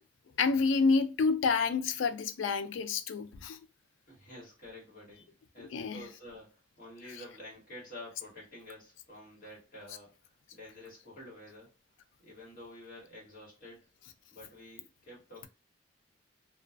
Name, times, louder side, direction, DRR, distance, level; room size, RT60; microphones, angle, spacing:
voice 1, 0.4-3.6 5.7-6.0, left 4 dB, 75° left, 0.3 m, -28 dB
voice 2, 4.1-11.7 12.2-13.9 14.3-15.5, left 1 dB, 45° left, 1.5 m, -50 dB
2.4 x 2.3 x 2.4 m
head